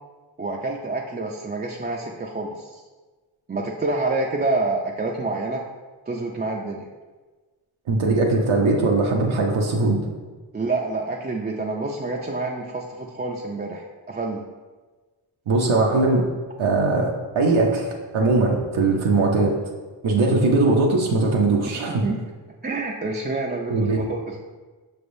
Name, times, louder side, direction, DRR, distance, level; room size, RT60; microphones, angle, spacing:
voice 1, 0.4-2.8 3.5-5.6 6.1-6.9 10.5-14.4 21.7-22.2 22.6-24.4, right 3 dB, 25° right, -1 dB, 0.3 m, -28 dB
voice 2, 7.9-10.0 15.5-16.3 16.6-19.5 20.0-22.0 23.7-24.1, right 3 dB, 80° right, -1 dB, 0.7 m, -20 dB
5.8 x 3.4 x 2.6 m, 1.3 s
cardioid pair, 40°, 47 cm